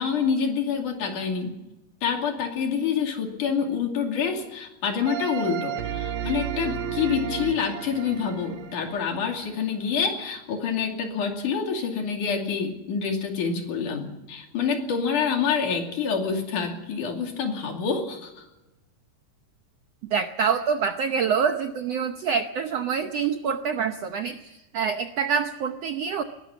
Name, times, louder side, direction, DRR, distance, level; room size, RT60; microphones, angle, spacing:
voice 1, 0.0-1.5 2.0-18.4, left 6 dB, 65° left, 3 dB, 4.1 m, -27 dB
sound 1, 5.1-9.9, right 9 dB, 90° right, 3.0 m, -33 dB
voice 2, 20.1-24.4 24.7-26.2, right 6 dB, 70° right, 7 dB, 1.5 m, -26 dB
21.0 x 18.0 x 7.0 m, 0.99 s
omnidirectional pair, 3.9 m